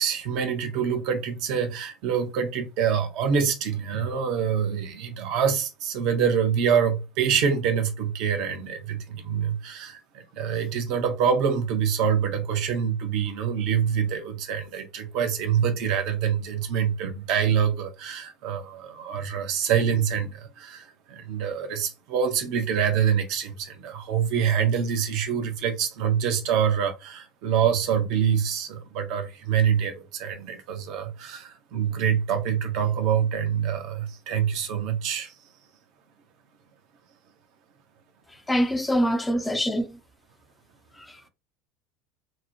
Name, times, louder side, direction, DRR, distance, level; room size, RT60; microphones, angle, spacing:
voice 1, 0.0-35.3, right 7 dB, 50° right, 0.6 m, -25 dB
voice 2, 38.3-40.0 40.9-41.2, equal, 10° left, 0.5 m, -25 dB
2.8 x 2.1 x 2.7 m
figure-of-eight pair, 70°, 0 cm